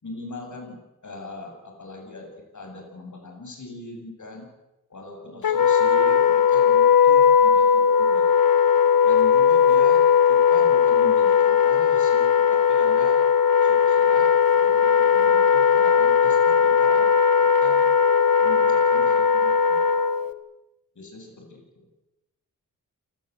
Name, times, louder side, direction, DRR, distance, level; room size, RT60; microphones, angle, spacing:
voice 1, 0.0-4.5 4.9-8.3 9.0-13.2 13.6-14.3 14.6-17.1 17.4-17.8 18.4-19.8 20.9-21.9, left 2 dB, 60° left, 2 dB, 7.9 m, -40 dB
Wind instrument woodwind instrument, 5.4-20.3, left 7 dB, 75° left, 1.4 m, -18 dB
28.5 x 19.0 x 8.1 m, 0.98 s
wide cardioid pair, 110°, 34 cm